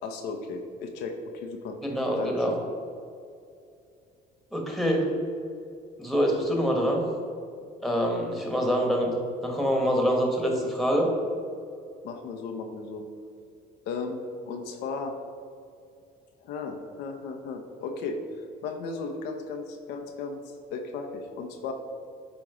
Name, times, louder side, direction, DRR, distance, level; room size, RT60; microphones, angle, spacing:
voice 1, 0.0-1.8 2.2-2.4 12.0-13.0 13.9-15.1 16.4-18.2 18.6-20.4 20.7-21.7, left 4 dB, 90° left, 4 dB, 0.7 m, -35 dB
voice 2, 1.8-2.5 4.5-5.1 6.0-7.0 7.8-9.2 9.4-11.1, equal, ahead, 0 dB, 1.3 m, -25 dB
8.6 x 3.0 x 4.9 m, 2.4 s
cardioid pair, 110°, 17 cm